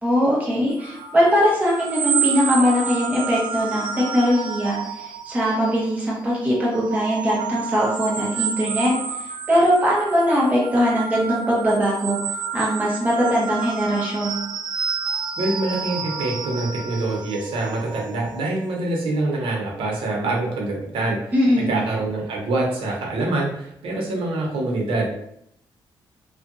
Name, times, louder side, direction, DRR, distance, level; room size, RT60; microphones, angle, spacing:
voice 1, 0.0-12.2 12.5-14.4 21.3-21.7, equal, 15° right, -6 dB, 1.0 m, -21 dB
sound 1, 0.8-6.0 6.4-18.7, right 7 dB, 60° right, 0.4 m, -30 dB
voice 2, 15.4-25.1, right 2 dB, 80° right, -2 dB, 0.9 m, -25 dB
2.6 x 2.4 x 2.5 m, 0.74 s
cardioid pair, 105°, 9 cm